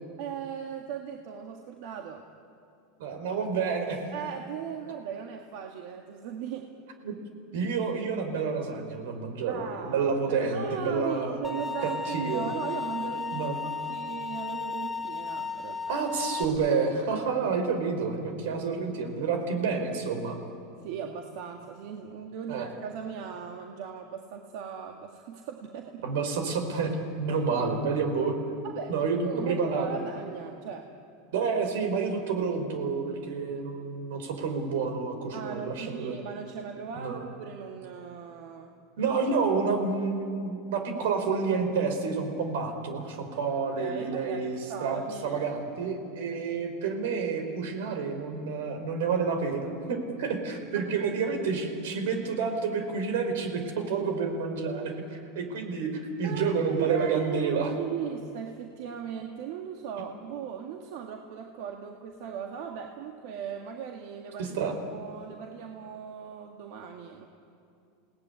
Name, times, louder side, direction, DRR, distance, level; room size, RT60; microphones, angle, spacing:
voice 1, 0.2-2.3 4.1-6.7 9.5-16.0 20.8-26.0 27.3-27.4 28.6-30.9 35.3-38.7 43.8-45.4 50.7-51.4 56.2-64.6 64.9-67.2, right 7 dB, 60° right, 2 dB, 1.9 m, -38 dB
voice 2, 3.0-4.0 7.0-7.2 7.5-11.4 12.1-12.5 13.3-13.6 15.9-20.4 22.5-22.7 26.0-26.9 27.2-28.3 28.9-29.9 31.3-36.2 36.9-37.2 39.0-55.9 56.2-57.7 64.4-64.7, right 5 dB, 80° right, 6 dB, 4.7 m, -29 dB
sound 1, 11.4-16.4, left 4 dB, ahead, 1.0 m, -34 dB
28.5 x 18.5 x 9.9 m, 2.5 s
supercardioid pair, 150°, 0 cm